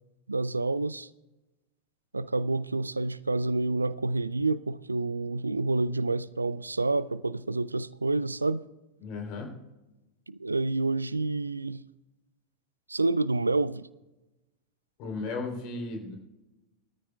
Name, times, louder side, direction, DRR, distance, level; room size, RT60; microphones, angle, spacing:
voice 1, 0.3-1.1 2.1-8.7 10.3-11.8 12.9-13.9, right 3 dB, 80° right, 0.4 m, -28 dB
voice 2, 9.0-9.6 15.0-16.2, left 3 dB, 40° left, 3.2 m, -35 dB
22.5 x 13.5 x 2.3 m
figure-of-eight pair, 90°, 0 cm